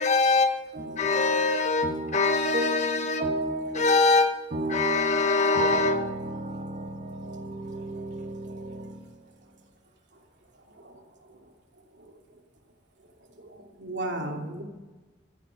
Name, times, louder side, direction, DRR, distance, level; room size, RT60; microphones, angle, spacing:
voice 1, 0.0-3.3 3.7-6.5, left 3 dB, 40° left, 1.2 m, -24 dB
voice 2, 0.7-1.3 1.8-4.0 4.5-9.2, right 1 dB, 45° right, 1.8 m, -33 dB
voice 3, 13.4-14.6, right 1 dB, 75° right, 2.7 m, -35 dB
14.0 x 11.0 x 5.9 m
head